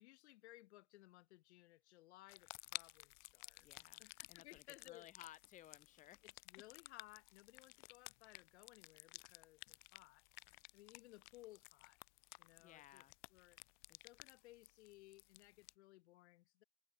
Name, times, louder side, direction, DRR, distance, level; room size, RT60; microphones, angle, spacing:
voice 1, 0.0-3.7 4.0-5.1 6.2-10.2 10.7-12.0 12.4-13.0 13.3-13.6 14.0-16.6, left 17 dB, 55° left, 1.0 m, -61 dB
sound 1, 2.3-15.7, left 25 dB, 35° left, 0.5 m, -56 dB
voice 2, 3.6-6.2 12.6-13.1 13.9-14.0, left 12 dB, 20° left, 0.9 m, -60 dB
hypercardioid pair, 115°, 40 cm